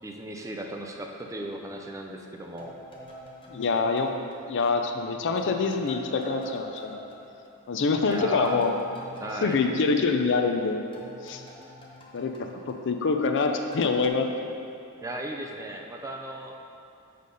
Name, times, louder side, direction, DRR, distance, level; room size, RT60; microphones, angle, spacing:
voice 1, 0.0-2.8 8.0-8.6 9.2-9.6 15.0-16.6, right 1 dB, 15° right, 1 dB, 0.4 m, -36 dB
sound 1, 2.6-5.0 5.4-10.6 10.9-13.4 13.7-14.1, left 1 dB, 25° left, 0.8 m, -47 dB
voice 2, 3.5-4.1 4.5-7.1 7.7-8.7 9.4-10.8 11.2-11.4 12.1-14.3, left 4 dB, 55° left, 5 dB, 0.5 m, -25 dB
6.6 x 4.0 x 5.1 m, 2.7 s
head